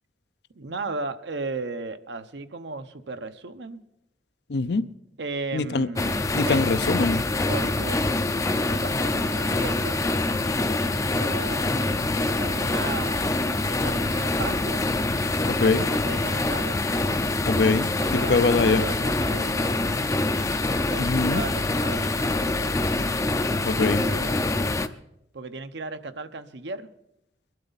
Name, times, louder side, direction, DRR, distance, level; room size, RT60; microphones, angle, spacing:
voice 1, 0.5-3.8 5.2-6.7 7.5-8.0 8.7-10.0 11.1-13.3 13.7-14.9 15.5-16.8 18.0-19.7 20.9-22.7 23.9-24.8 25.3-26.9, right 3 dB, 70° right, 10 dB, 0.9 m, -36 dB
voice 2, 4.5-4.8 5.5-5.9 6.3-7.2 15.5-15.8 17.5-18.9 21.0-21.4 23.7-24.0, left 3 dB, 65° left, 13 dB, 0.6 m, -23 dB
sound 1, 6.0-24.9, left 2 dB, 15° left, 0.5 m, -25 dB
22.0 x 12.0 x 4.1 m, 0.83 s
head